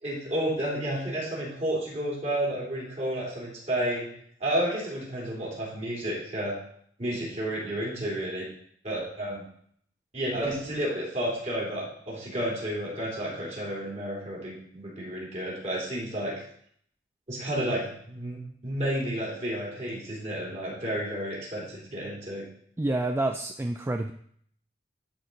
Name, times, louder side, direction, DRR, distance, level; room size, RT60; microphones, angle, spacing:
voice 1, 0.0-4.1 4.4-6.5 7.0-8.4 8.8-9.4 10.1-16.3 17.3-22.4, right 1 dB, 40° right, -5 dB, 3.3 m, -31 dB
voice 2, 22.8-24.1, right 2 dB, 15° right, 5 dB, 0.3 m, -28 dB
11.5 x 4.4 x 3.9 m, 0.64 s
head